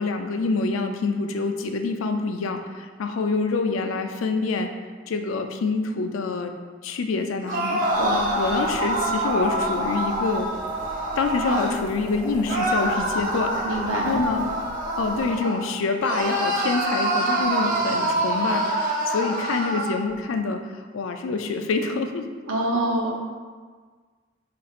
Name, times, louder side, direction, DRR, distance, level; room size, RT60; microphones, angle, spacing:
voice 1, 0.0-4.7 5.1-6.6 6.8-7.8 8.4-10.5 11.2-14.4 15.0-22.3, left 4 dB, 85° left, 6 dB, 0.4 m, -26 dB
sound 1, 7.4-11.7 12.5-15.6 16.0-19.9, right 1 dB, 40° right, 0.8 m, -26 dB
sound 2, 7.9-15.3, equal, 20° left, 0.8 m, -40 dB
voice 2, 8.0-8.3 13.6-14.2 22.5-23.2, right 1 dB, 80° right, -1 dB, 0.8 m, -25 dB
5.2 x 4.2 x 2.4 m, 1.5 s
head